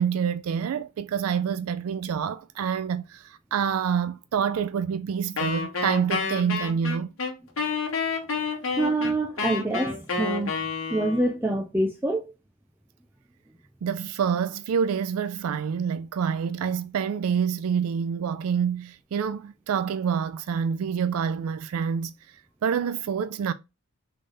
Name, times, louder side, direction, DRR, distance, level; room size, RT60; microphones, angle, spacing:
voice 1, 0.0-7.1 13.8-22.1 22.6-23.5, right 7 dB, 85° right, 0.3 m, -27 dB
Wind instrument woodwind instrument, 5.4-11.4, left 4 dB, 70° left, 1.1 m, -29 dB
voice 2, 8.8-10.6 10.9-12.3, right 1 dB, 10° right, 0.4 m, -26 dB
3.8 x 3.3 x 3.8 m
head